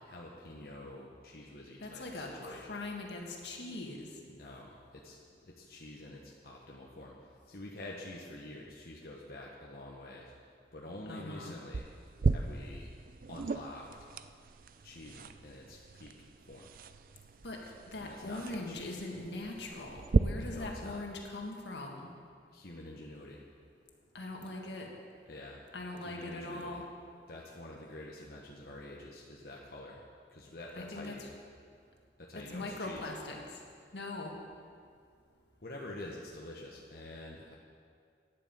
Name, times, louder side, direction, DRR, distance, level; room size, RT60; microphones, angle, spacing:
voice 1, 0.0-2.8 4.3-10.3 10.7-11.8 12.3-12.9 13.3-13.9 14.8-16.1 16.4-16.7 18.0-19.0 20.5-21.0 22.5-23.4 25.3-25.6 26.0-26.8 27.3-31.3 32.2-33.0 35.6-37.6, left 1 dB, 55° left, -3 dB, 1.2 m, -47 dB
voice 2, 1.8-4.1 11.1-11.6 17.4-22.1 24.1-24.9 25.7-26.9 30.8-31.3 32.3-33.6 33.9-34.3, left 2 dB, 80° left, 0 dB, 1.8 m, -41 dB
sound 1, 11.7-20.2, right 4 dB, 50° right, 0.4 m, -36 dB
10.0 x 9.1 x 7.6 m, 2.2 s
head